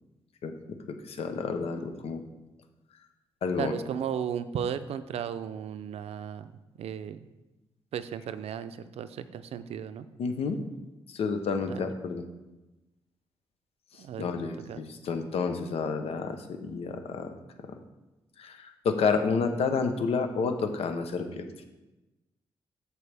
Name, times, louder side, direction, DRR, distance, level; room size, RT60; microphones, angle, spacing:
voice 1, 1.0-2.2 3.4-3.7 10.2-10.6 11.1-12.2 14.2-17.3 18.4-21.4, left 5 dB, 80° left, 7 dB, 0.8 m, -30 dB
voice 2, 3.6-6.5 6.8-7.3 7.9-10.1 11.7-11.8 14.0-14.3 14.7-14.8, right 8 dB, 85° right, 12 dB, 0.4 m, -35 dB
13.5 x 4.7 x 3.4 m, 1.0 s
wide cardioid pair, 155°, 10 cm